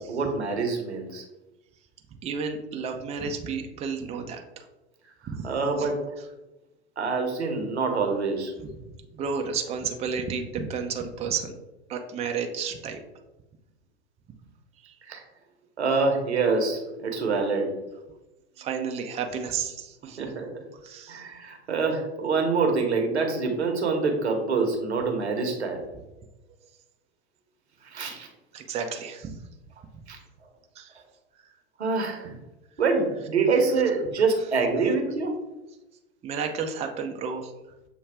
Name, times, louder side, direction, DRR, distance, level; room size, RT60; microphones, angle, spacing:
voice 1, 0.1-1.2 5.4-6.0 7.0-8.5 15.1-15.2 15.8-17.7 20.2-20.6 21.1-25.8 27.9-28.3 30.1-30.2 31.8-32.4 32.8-35.3, right 4 dB, 85° right, 3 dB, 0.9 m, -25 dB
voice 2, 2.2-4.6 5.3-5.4 5.8-5.9 9.1-11.5 11.9-13.0 14.8-14.9 18.6-20.4 20.8-21.2 28.5-29.4 30.8-30.9 36.2-37.5, right 6 dB, 20° right, 4 dB, 0.5 m, -32 dB
6.8 x 2.3 x 3.4 m, 1.0 s
figure-of-eight pair, 85°, 32 cm